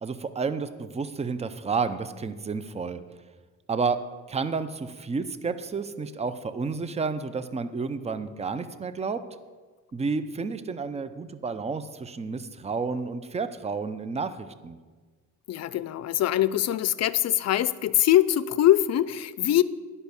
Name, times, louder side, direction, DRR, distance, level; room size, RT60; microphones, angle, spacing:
voice 1, 0.0-3.0 3.7-4.0 4.3-9.2 9.9-14.8, right 4 dB, 20° right, 12 dB, 0.6 m, -31 dB
voice 2, 15.5-19.6, left 12 dB, 60° left, 17 dB, 0.5 m, -23 dB
10.5 x 5.5 x 7.0 m, 1.4 s
cardioid pair, 90°, 30 cm